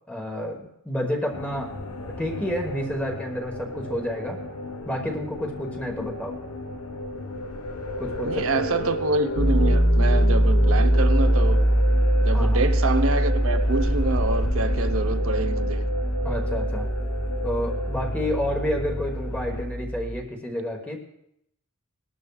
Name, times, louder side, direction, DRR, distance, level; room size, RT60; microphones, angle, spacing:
voice 1, 0.1-4.4 4.8-6.4 8.0-8.6 12.3-12.6 16.2-16.9 17.4-21.0, equal, 5° left, 1.2 m, -30 dB
sound 1, 1.3-19.7, left 1 dB, 85° left, 1.0 m, -33 dB
voice 2, 8.3-11.7 12.2-15.9, right 3 dB, 65° right, 0.8 m, -27 dB
Piano, 9.3-20.2, right 1 dB, 65° left, 2.3 m, -22 dB
19.5 x 12.5 x 2.3 m
head